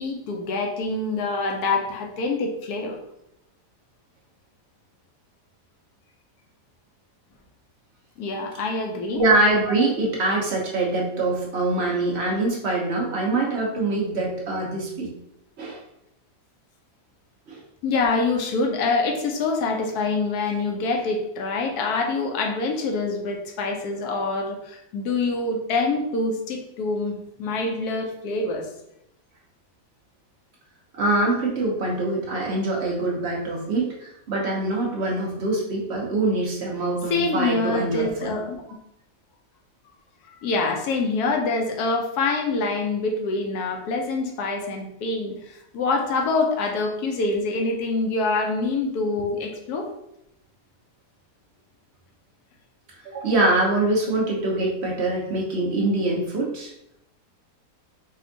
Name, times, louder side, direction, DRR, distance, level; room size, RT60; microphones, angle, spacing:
voice 1, 0.0-3.0 8.2-9.4 17.8-28.7 37.1-38.6 40.4-49.9, left 3 dB, 70° left, 2 dB, 1.2 m, -25 dB
voice 2, 9.1-15.1 15.6-15.8 17.5-17.6 30.9-38.3 53.0-56.7, right 2 dB, 45° right, -2 dB, 1.0 m, -24 dB
4.3 x 2.3 x 3.8 m, 0.80 s
omnidirectional pair, 1.8 m